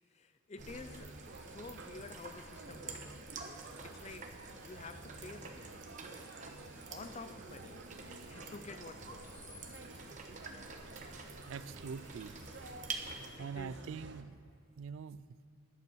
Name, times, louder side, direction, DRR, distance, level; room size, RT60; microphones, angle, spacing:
voice 1, 0.1-3.1 3.8-5.8 6.9-7.9 8.3-9.3 13.4-13.8, left 3 dB, 35° left, 0.4 m, -50 dB
sound 1, 0.6-13.3, right 4 dB, 35° right, 1.0 m, -49 dB
sound 2, 0.6-14.2, right 2 dB, 60° right, 0.7 m, -52 dB
sound 3, 4.5-14.0, left 3 dB, 70° left, 2.3 m, -63 dB
voice 2, 11.5-12.4 13.4-14.4 14.8-15.2, right 6 dB, 75° right, 0.3 m, -43 dB
11.0 x 7.3 x 6.2 m
head